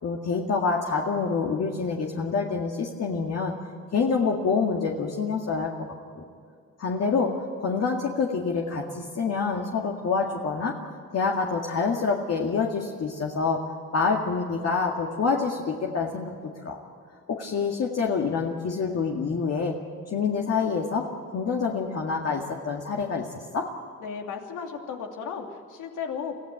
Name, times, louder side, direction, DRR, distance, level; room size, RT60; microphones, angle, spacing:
voice 1, 0.0-3.5 3.9-5.7 6.8-7.3 7.6-10.8 11.1-13.6 13.9-16.4 16.6-16.8 17.3-19.7 20.1-21.0 21.3-23.3 23.5-23.7, left 5 dB, 55° left, 0 dB, 2.1 m, -26 dB
voice 2, 24.0-26.4, left 6 dB, 80° left, 3 dB, 2.8 m, -35 dB
24.5 x 15.5 x 8.9 m, 2.2 s
cardioid pair, 90°, 30 cm